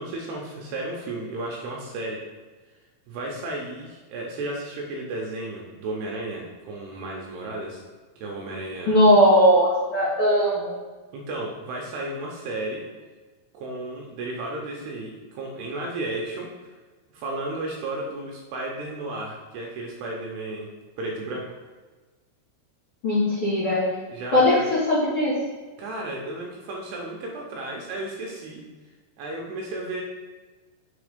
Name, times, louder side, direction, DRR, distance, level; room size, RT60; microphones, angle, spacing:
voice 1, 0.0-2.2 3.1-7.8 8.2-9.1 11.1-12.8 13.5-16.5 17.1-20.7 21.0-21.4 24.1-24.6 25.8-28.6 29.2-30.0, right 2 dB, 80° right, -1 dB, 2.4 m, -33 dB
voice 2, 8.9-10.7 23.0-23.8 24.3-25.4, equal, 50° left, -12 dB, 1.8 m, -19 dB
6.8 x 4.1 x 5.0 m, 1.3 s
omnidirectional pair, 5.6 m